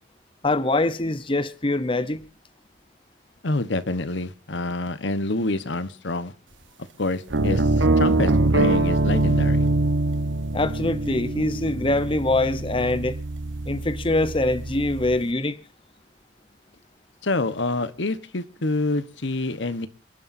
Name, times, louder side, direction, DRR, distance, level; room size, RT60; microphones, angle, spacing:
voice 1, 0.4-2.2 10.5-13.2 13.7-15.6, left 2 dB, 25° left, 0.9 m, -24 dB
voice 2, 3.4-6.3 7.0-9.7 17.2-19.9, left 2 dB, 70° left, 1.2 m, -27 dB
sound 1, 7.3-15.2, right 2 dB, 80° right, 1.3 m, -23 dB
28.0 x 11.5 x 2.7 m
head